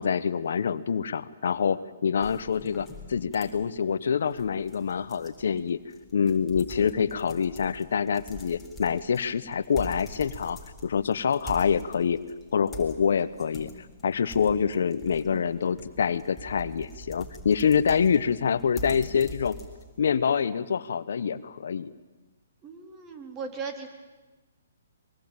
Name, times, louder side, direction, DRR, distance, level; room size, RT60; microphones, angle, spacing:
voice 1, 0.0-5.8 6.1-12.2 12.5-13.7 14.0-19.6 20.0-21.9, left 6 dB, 65° left, 15 dB, 1.0 m, -26 dB
sound 1, 2.2-20.1, equal, 5° left, 4.2 m, -45 dB
voice 2, 22.6-23.9, right 5 dB, 20° right, 5 dB, 3.8 m, -37 dB
23.5 x 22.5 x 9.0 m, 1.2 s
hypercardioid pair, 135°, 0 cm